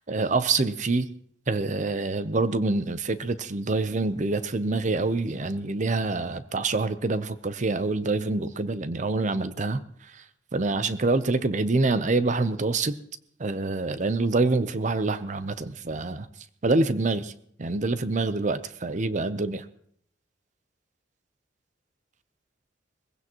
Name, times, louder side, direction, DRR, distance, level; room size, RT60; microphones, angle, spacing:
voice 1, 0.1-1.1 1.5-9.8 10.1-10.2 10.5-13.0 13.4-16.3 16.6-17.3 17.6-19.7, right 3 dB, 40° right, 13 dB, 0.7 m, -26 dB
21.5 x 16.0 x 3.0 m, 0.67 s
head